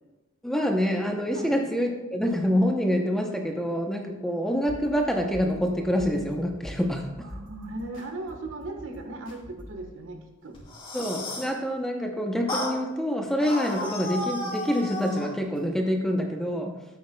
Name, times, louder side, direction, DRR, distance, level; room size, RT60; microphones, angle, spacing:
voice 1, 0.4-7.3 10.9-16.7, equal, ahead, 2 dB, 0.7 m, -26 dB
sound 1, 4.7-9.9, left 1 dB, 60° left, 2.6 m, -44 dB
voice 2, 7.2-10.2 10.4-10.6, right 2 dB, 70° right, 4 dB, 1.2 m, -37 dB
sound 2, 10.5-11.5 12.5-12.8 13.4-15.3, left 1 dB, 25° left, 3.0 m, -33 dB
13.0 x 8.7 x 2.2 m, 1.1 s
head